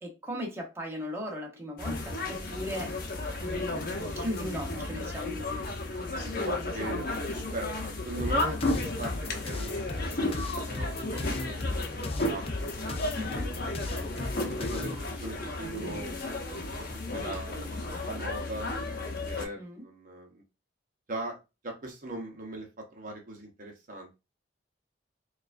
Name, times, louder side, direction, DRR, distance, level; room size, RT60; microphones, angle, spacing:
voice 1, 0.0-2.9 3.4-3.7 4.1-6.0 13.2-13.5 19.6-19.8, equal, 15° right, 0 dB, 0.9 m, -38 dB
sound 1, 1.8-19.4, left 2 dB, 50° left, 0.8 m, -33 dB
voice 2, 6.4-7.2 7.5-7.7 8.0-11.8 12.2-12.4 12.7-13.5 14.0-16.7 17.1-20.4 21.1-21.4 21.6-24.2, right 1 dB, 45° right, 2 dB, 0.8 m, -40 dB
sound 2, 8.2-15.0, left 2 dB, 30° left, 0.4 m, -36 dB
4.5 x 2.4 x 2.5 m, 0.27 s
head